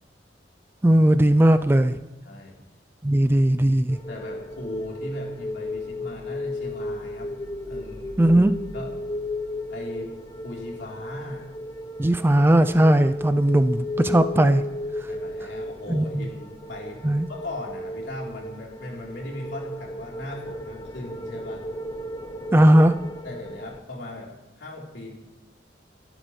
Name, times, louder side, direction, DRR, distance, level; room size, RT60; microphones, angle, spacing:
voice 1, 0.8-2.0 3.0-4.0 8.2-8.6 12.0-14.6 15.9-16.3 17.0-17.3 22.5-22.9, right 1 dB, 10° right, 10 dB, 0.4 m, -18 dB
voice 2, 2.2-2.6 4.1-8.2 8.7-9.1 9.7-10.1 10.4-11.5 15.1-21.6 22.6-22.7 23.2-25.1, left 1 dB, 75° left, -3 dB, 3.5 m, -38 dB
sound 1, 3.9-23.8, left 1 dB, 25° left, 0.8 m, -35 dB
23.0 x 12.0 x 3.2 m, 1.1 s
head